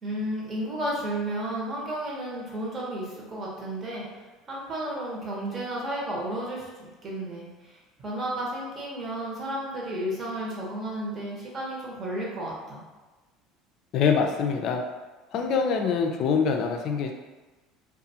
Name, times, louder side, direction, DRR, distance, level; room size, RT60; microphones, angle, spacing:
voice 1, 0.0-12.8, right 1 dB, 40° right, -4 dB, 0.9 m, -33 dB
voice 2, 13.9-14.8 15.3-17.1, left 6 dB, 60° left, 4 dB, 0.3 m, -24 dB
2.5 x 2.3 x 2.7 m, 1.2 s
hypercardioid pair, 80°, 0 cm